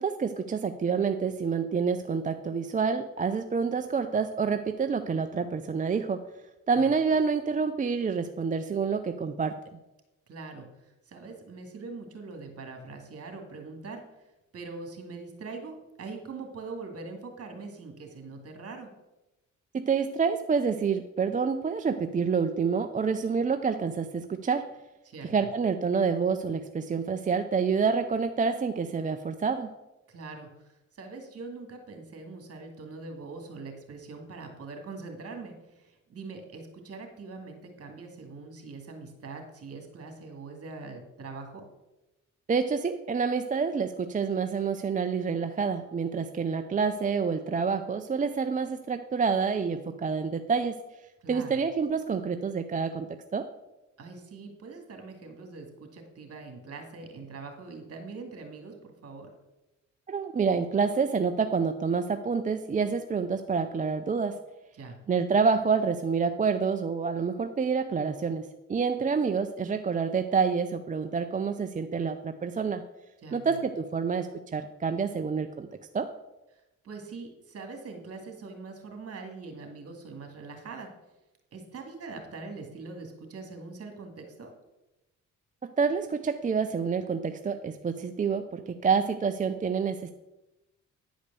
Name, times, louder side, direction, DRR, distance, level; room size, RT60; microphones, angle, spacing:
voice 1, 0.0-6.2 6.7-9.5 19.7-24.7 25.2-29.7 42.5-50.8 51.3-53.5 60.1-64.4 65.1-72.8 73.3-75.7 75.9-76.1 85.8-90.1, right 5 dB, 25° right, 7 dB, 0.5 m, -28 dB
voice 2, 10.3-14.1 14.5-18.9 25.0-25.3 30.1-41.6 51.2-51.6 54.0-59.3 64.7-65.0 73.2-73.6 76.5-80.9 81.5-84.5, right 3 dB, 50° right, 4 dB, 2.2 m, -43 dB
9.9 x 5.1 x 6.7 m, 0.99 s
cardioid pair, 90°, 30 cm